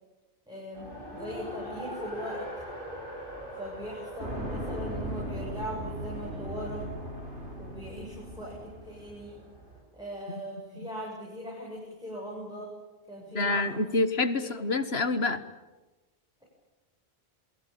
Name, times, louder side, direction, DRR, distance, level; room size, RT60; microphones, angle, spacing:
voice 1, 0.5-2.5 3.6-6.9 7.6-9.5 9.9-12.7 13.1-14.0 14.4-14.6 16.4-16.5, equal, 5° right, -4 dB, 7.3 m, -40 dB
Race car auto racing, 0.7-9.8, equal, 50° right, 8.1 m, -43 dB
sound 1, 4.2-9.2, equal, 80° right, 5.8 m, -38 dB
voice 2, 13.3-15.4, left 3 dB, 65° left, 12 dB, 1.7 m, -27 dB
28.0 x 22.5 x 8.7 m, 1.1 s
omnidirectional pair, 1.1 m